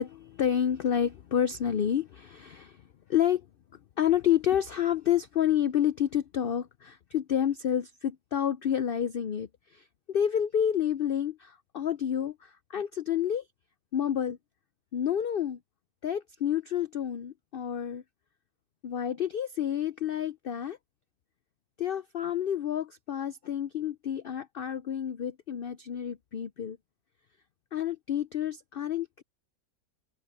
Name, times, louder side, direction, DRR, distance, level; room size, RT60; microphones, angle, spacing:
voice 1, 0.0-2.8 3.1-3.4 4.0-13.4 13.9-14.4 14.9-15.6 16.0-18.0 18.8-20.8 21.8-26.8 27.7-29.2, left 9 dB, 75° left, 0.5 m, -29 dB
open air
omnidirectional pair, 1.6 m